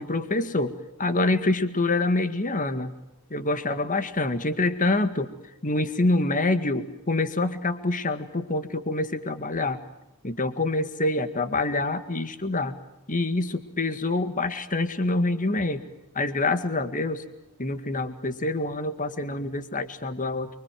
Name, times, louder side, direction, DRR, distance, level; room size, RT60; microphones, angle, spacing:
voice 1, 0.0-2.9 3.3-5.3 5.6-9.8 10.2-12.8 13.1-15.8 16.2-17.2 17.6-20.6, left 2 dB, 35° left, 10 dB, 1.9 m, -26 dB
29.5 x 24.5 x 7.7 m, 0.91 s
head